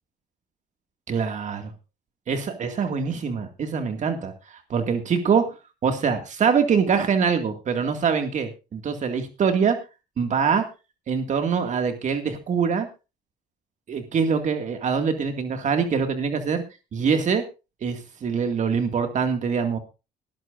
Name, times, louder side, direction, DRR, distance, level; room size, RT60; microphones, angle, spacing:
voice 1, 1.1-1.7 2.3-5.6 5.8-9.8 10.2-10.6 11.1-12.9 13.9-16.6 16.9-17.4 17.8-19.8, right 6 dB, 45° right, 6 dB, 2.1 m, -24 dB
19.0 x 12.0 x 2.6 m, 0.30 s
cardioid pair, 110°, 17 cm